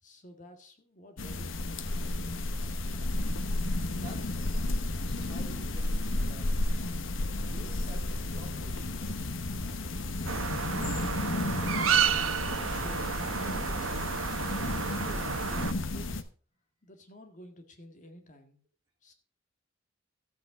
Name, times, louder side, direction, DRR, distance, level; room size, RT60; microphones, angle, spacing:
voice 1, 0.0-2.1 12.3-14.3 14.9-16.3 16.8-18.6 19.0-19.1, left 1 dB, 40° left, 5 dB, 1.8 m, -50 dB
sound 1, 1.2-16.2, left 2 dB, 70° left, 1.0 m, -32 dB
voice 2, 3.7-4.8 5.0-6.6 7.4-9.3, right 2 dB, 20° right, -4 dB, 3.4 m, -51 dB
sound 2, 10.3-15.7, right 7 dB, 90° right, 1.0 m, -31 dB
13.0 x 8.3 x 4.8 m, 0.39 s
head